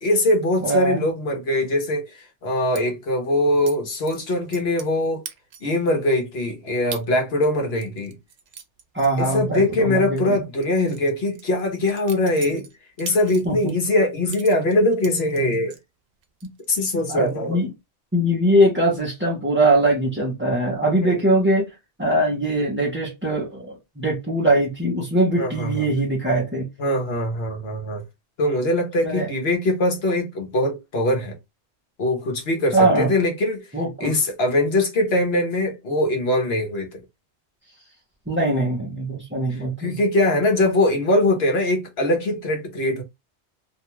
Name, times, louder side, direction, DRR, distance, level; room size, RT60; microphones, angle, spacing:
voice 1, 0.0-5.2 5.6-8.2 9.2-12.7 13.0-15.8 16.7-17.6 21.0-21.2 25.3-25.8 26.8-28.0 28.4-31.4 32.0-33.6 34.0-37.0 39.8-43.0, left 1 dB, 65° left, 1.1 m, -22 dB
voice 2, 0.6-1.0 8.9-10.4 13.4-13.8 17.1-17.7 18.1-21.7 22.0-26.7 29.0-29.3 32.7-33.1 33.7-34.1 38.3-40.0, right 1 dB, 15° right, 0.5 m, -21 dB
sound 1, 2.8-2.9 3.7-3.8 4.1-5.0 5.3-5.8 6.2-6.3 6.9-7.1 7.4-9.8 10.0-10.2 10.6-13.8 14.3-15.8 16.2-16.7 16.9-17.3, right 7 dB, 70° right, 0.8 m, -40 dB
2.7 x 2.2 x 2.9 m
omnidirectional pair, 1.2 m